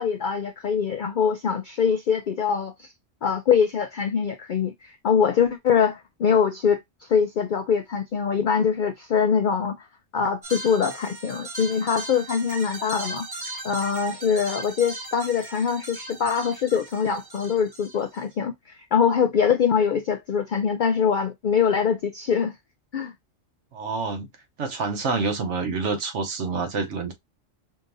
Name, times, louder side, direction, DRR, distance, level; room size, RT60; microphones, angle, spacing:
voice 1, 0.0-2.9 3.2-9.9 10.1-13.3 13.6-22.5 22.9-23.1, left 6 dB, 65° left, 0.4 m, -23 dB
sound 1, 10.4-18.2, right 2 dB, 20° right, 0.9 m, -38 dB
voice 2, 23.7-24.3 24.6-27.1, right 4 dB, 65° right, 1.1 m, -27 dB
5.0 x 2.7 x 2.6 m
omnidirectional pair, 1.3 m